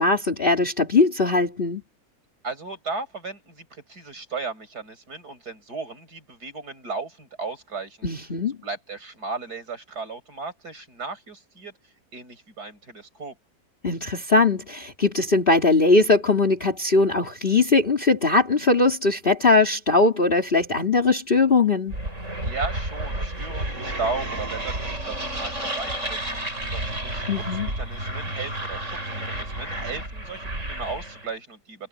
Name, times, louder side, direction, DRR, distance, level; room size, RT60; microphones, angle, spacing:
voice 1, 0.0-1.8 8.0-8.6 13.8-22.0 27.3-27.7, left 3 dB, 30° left, 3.3 m, -20 dB
voice 2, 2.4-8.1 8.6-11.7 12.1-13.4 22.4-26.4 26.7-31.9, right 4 dB, 60° right, 6.1 m, -35 dB
sound 1, 21.9-31.3, right 1 dB, 40° right, 7.8 m, -31 dB
omnidirectional pair, 1.9 m